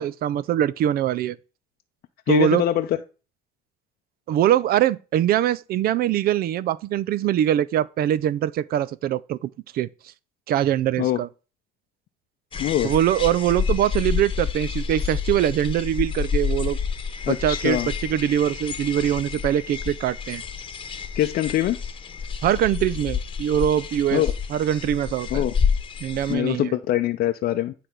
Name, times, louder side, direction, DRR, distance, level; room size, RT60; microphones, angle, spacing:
voice 1, 0.0-1.4 2.3-2.6 4.3-9.9 10.5-11.3 12.8-16.8 17.3-20.4 22.4-24.2 24.5-25.4 26.0-26.8, right 11 dB, 65° right, 0.5 m, -23 dB
voice 2, 2.3-3.0 11.0-11.2 12.6-12.9 17.3-17.9 21.1-21.8 24.1-24.3 25.3-25.5 26.3-27.7, left 13 dB, 65° left, 0.6 m, -23 dB
sound 1, 12.5-26.3, left 6 dB, 30° left, 1.0 m, -29 dB
9.9 x 3.4 x 5.9 m
cardioid pair, 110°, 17 cm